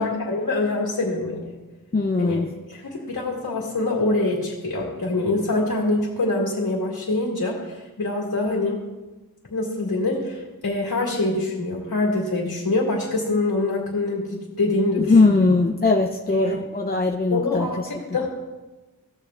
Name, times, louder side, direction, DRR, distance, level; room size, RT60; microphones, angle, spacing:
voice 1, 0.0-1.4 2.2-2.4 2.8-8.8 9.5-15.4 16.3-16.6 17.3-18.3, left 2 dB, 80° left, -5 dB, 2.2 m, -25 dB
voice 2, 1.9-2.5 15.0-17.7, left 3 dB, 25° left, 2 dB, 0.5 m, -20 dB
15.5 x 7.6 x 2.4 m, 1.1 s
wide cardioid pair, 75°, 36 cm